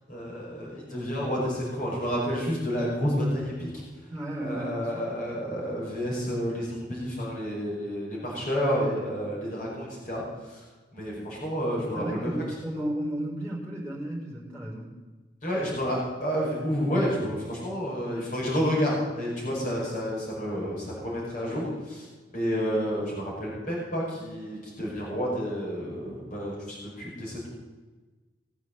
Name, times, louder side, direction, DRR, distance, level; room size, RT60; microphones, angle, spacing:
voice 1, 0.1-3.8 4.4-10.7 10.9-12.3 15.4-22.1 22.3-27.5, equal, 45° left, -5 dB, 5.5 m, -30 dB
voice 2, 4.1-4.9 11.9-14.9, right 1 dB, 5° left, -4 dB, 5.2 m, -33 dB
19.0 x 8.3 x 8.1 m, 1.3 s
head